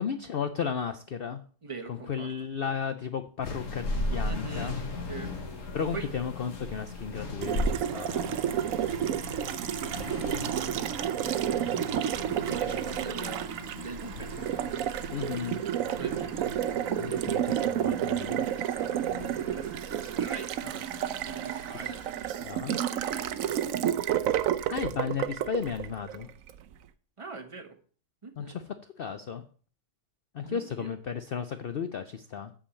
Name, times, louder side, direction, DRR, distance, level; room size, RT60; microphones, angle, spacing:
voice 1, 0.0-1.4 1.9-4.8 5.7-8.4 15.1-15.6 17.0-18.6 22.4-22.8 24.7-26.3 28.4-28.6 29.0-29.4 30.3-32.5, left 7 dB, 80° left, 10 dB, 0.5 m, -34 dB
voice 2, 1.6-2.3 4.2-4.8 5.1-5.3 5.9-6.1 7.8-8.1 8.4-9.1 9.9-10.9 12.5-14.5 15.9-16.8 19.1-24.0 27.2-27.8 28.2-28.6 30.4-31.0, right 4 dB, 25° right, 7 dB, 0.9 m, -44 dB
sound 1, 3.4-22.1, left 2 dB, 55° left, 1.6 m, -38 dB
Water tap faucet, 7.4-26.6, right 10 dB, 65° right, 1.0 m, -31 dB
8.5 x 4.9 x 7.0 m, 0.43 s
omnidirectional pair, 1.7 m